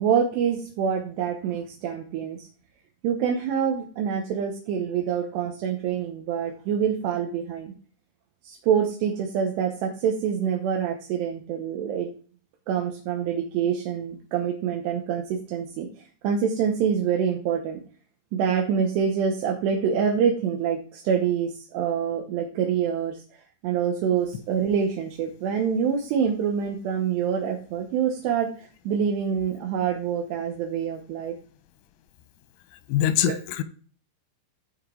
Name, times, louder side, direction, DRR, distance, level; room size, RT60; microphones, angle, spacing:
voice 1, 0.0-2.5 3.0-7.7 8.4-12.1 12.7-15.9 16.2-17.8 18.3-23.2 23.6-31.3 33.3-33.4, right 7 dB, 70° right, 2.9 m, -26 dB
voice 2, 32.9-33.6, left 11 dB, 90° left, 3.3 m, -23 dB
16.0 x 5.3 x 3.8 m
omnidirectional pair, 5.6 m